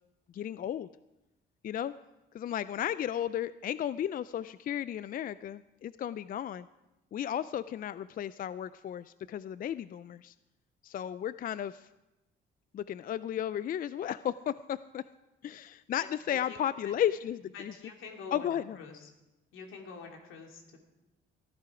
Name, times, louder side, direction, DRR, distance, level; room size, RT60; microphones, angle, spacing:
voice 1, 0.3-0.9 1.6-1.9 2.3-6.7 7.1-10.3 10.8-11.9 12.7-15.0 15.4-17.7 18.3-18.8, left 10 dB, 45° left, 16 dB, 0.4 m, -34 dB
voice 2, 16.0-16.9 17.5-19.1 19.5-20.8, left 4 dB, 85° left, 2 dB, 2.8 m, -47 dB
18.0 x 11.5 x 4.9 m, 0.99 s
cardioid pair, 90°, 20 cm